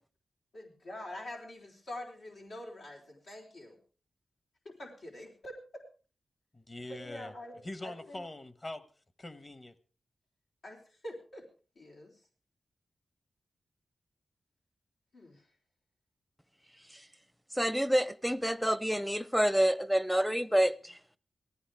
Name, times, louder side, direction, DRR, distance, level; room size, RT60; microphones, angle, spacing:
voice 1, 0.5-3.8 4.6-5.8 6.9-8.2 10.6-11.4 11.8-12.1 15.1-15.4, left 1 dB, 85° left, 4.0 m, -45 dB
voice 2, 6.5-7.3 7.6-8.8 9.2-9.7, left 1 dB, 35° left, 1.3 m, -43 dB
voice 3, 17.5-21.0, equal, ahead, 0.6 m, -28 dB
18.5 x 14.5 x 3.5 m
cardioid pair, 70°, 0 cm